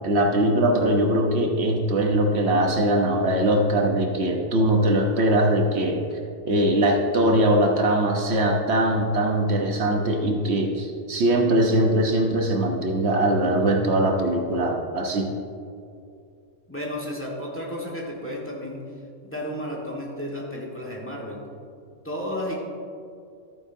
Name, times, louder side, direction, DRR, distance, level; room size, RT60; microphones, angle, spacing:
voice 1, 0.0-6.0 6.4-15.3, right 1 dB, 70° right, 2 dB, 1.2 m, -21 dB
voice 2, 16.7-18.8 19.2-21.4 22.0-22.6, equal, 10° left, -2 dB, 1.5 m, -32 dB
13.5 x 9.1 x 2.7 m, 2.4 s
omnidirectional pair, 1.2 m